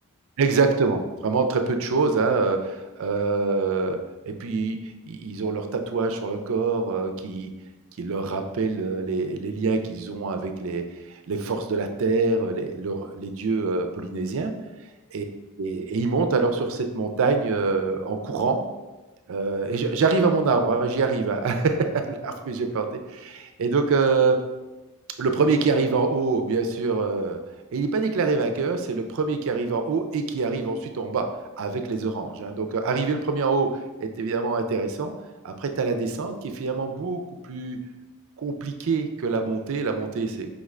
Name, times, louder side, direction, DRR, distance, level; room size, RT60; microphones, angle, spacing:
voice 1, 0.4-4.0 4.3-4.8 5.1-7.5 8.0-14.5 15.1-15.2 15.6-18.6 19.3-22.9 23.1-24.4 25.2-27.4 27.7-31.3 31.6-33.7 34.0-35.1 35.4-37.8 38.4-40.5, right 4 dB, 65° right, 6 dB, 0.4 m, -25 dB
5.1 x 2.5 x 3.1 m, 1.1 s
head